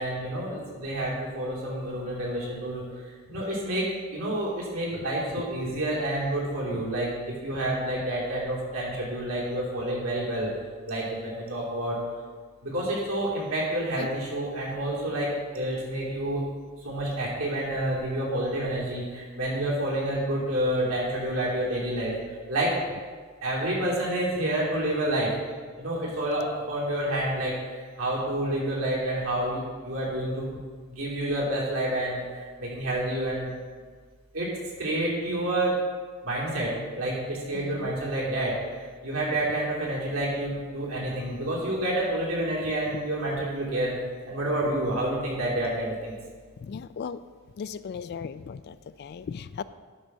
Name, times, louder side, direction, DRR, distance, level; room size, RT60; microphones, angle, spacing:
voice 1, 0.0-2.9 3.3-10.5 10.9-12.0 12.6-16.4 16.8-22.1 22.5-22.8 23.4-25.3 25.8-27.5 28.0-30.5 30.9-32.2 32.6-33.5 34.3-34.5 34.8-35.8 36.2-38.6 39.0-44.0 44.2-46.1, right 1 dB, 80° right, -5 dB, 3.0 m, -29 dB
voice 2, 5.4-5.8 6.7-6.8 7.7-7.8 14.0-14.1 37.5-37.9 46.6-47.2 47.6-49.6, left 6 dB, 50° left, 14 dB, 0.3 m, -37 dB
11.0 x 4.1 x 6.2 m, 1.5 s
head